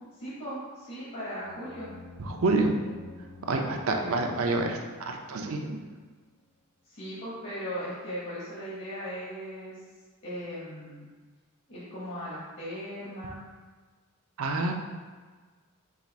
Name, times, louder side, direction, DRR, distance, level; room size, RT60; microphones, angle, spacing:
voice 1, 0.2-1.9 3.5-4.1 6.9-9.7 10.2-11.1 11.7-13.4, equal, 55° left, -9 dB, 1.2 m, -38 dB
sound 1, 1.4-5.9, left 4 dB, 90° left, 1.4 m, -50 dB
voice 2, 2.2-2.8 3.5-4.8 5.1-5.8 14.4-14.7, right 3 dB, 65° right, 3 dB, 0.5 m, -27 dB
4.7 x 2.4 x 4.1 m, 1.4 s
head